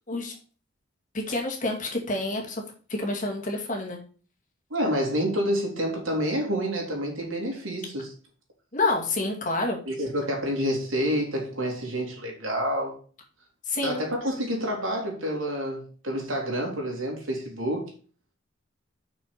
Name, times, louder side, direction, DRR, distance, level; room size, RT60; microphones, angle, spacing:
voice 1, 1.1-2.6 3.0-4.0 8.7-9.8 13.7-14.0, left 2 dB, 40° left, 0 dB, 2.3 m, -28 dB
voice 2, 4.7-8.1 9.9-13.0 13.8-17.9, equal, 80° right, 0 dB, 3.6 m, -28 dB
6.3 x 6.1 x 6.8 m, 0.40 s
head